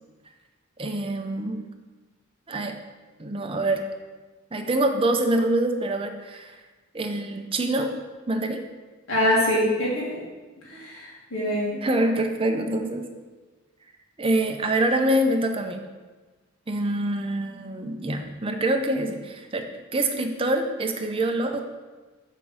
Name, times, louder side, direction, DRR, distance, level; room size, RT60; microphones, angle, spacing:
voice 1, 0.8-1.7 2.5-2.8 3.2-3.9 4.5-6.5 6.9-7.9 8.3-8.7 11.7-13.1 14.2-15.8 16.7-19.7 19.9-21.6, right 1 dB, 25° right, 4 dB, 0.6 m, -25 dB
voice 2, 9.1-10.2 10.7-11.8, left 1 dB, 60° left, -6 dB, 1.9 m, -24 dB
7.5 x 3.7 x 6.3 m, 1.3 s
head